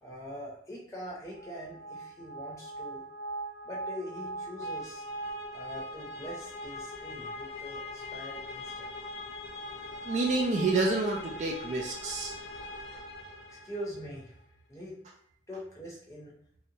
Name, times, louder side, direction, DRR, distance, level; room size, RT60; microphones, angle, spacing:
voice 1, 0.0-3.1 3.6-5.0 5.5-8.9 13.5-14.4 14.7-15.0 15.5-16.3, equal, 15° left, -5 dB, 0.7 m, -43 dB
sound 1, 1.3-14.1, equal, 70° left, 0.4 m, -41 dB
voice 2, 10.1-12.3, right 3 dB, 40° right, 0 dB, 0.3 m, -28 dB
2.8 x 2.2 x 2.6 m, 0.66 s
head